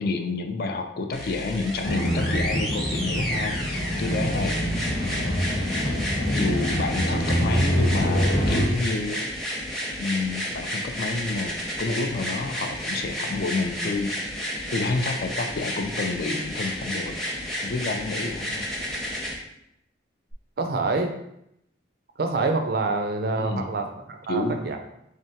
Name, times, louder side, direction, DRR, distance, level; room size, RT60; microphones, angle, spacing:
voice 1, 0.0-5.7 6.3-9.3 10.0-14.2 14.7-18.6 23.4-23.7 24.3-24.6, left 3 dB, 50° left, 6 dB, 0.3 m, -29 dB
sound 1, 1.1-19.3 20.3-20.4, equal, 5° left, 0.6 m, -31 dB
sound 2, 1.8-8.7, equal, 75° left, 0.8 m, -25 dB
voice 2, 20.6-21.2 22.2-24.8, right 3 dB, 55° right, 5 dB, 0.4 m, -26 dB
3.7 x 3.3 x 2.8 m, 0.78 s
head